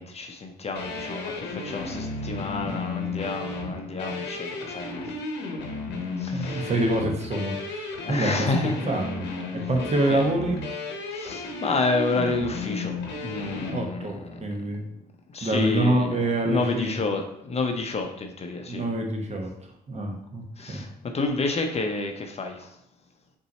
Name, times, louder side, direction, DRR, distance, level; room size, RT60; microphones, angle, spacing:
voice 1, 0.0-5.1 6.2-6.7 8.0-8.8 10.1-10.2 11.1-12.9 13.2-14.5 15.3-16.2 16.4-18.9 20.6-20.9 21.1-22.7, left 3 dB, 35° left, 4 dB, 0.6 m, -29 dB
sound 1, 0.7-13.8, left 3 dB, 80° left, 0.9 m, -33 dB
voice 2, 6.3-8.5 8.8-10.6 13.7-14.8 15.4-17.2 18.7-19.5 19.9-20.9, right 1 dB, 40° right, 2 dB, 1.0 m, -26 dB
4.0 x 2.7 x 4.1 m, 0.75 s
supercardioid pair, 65°, 17 cm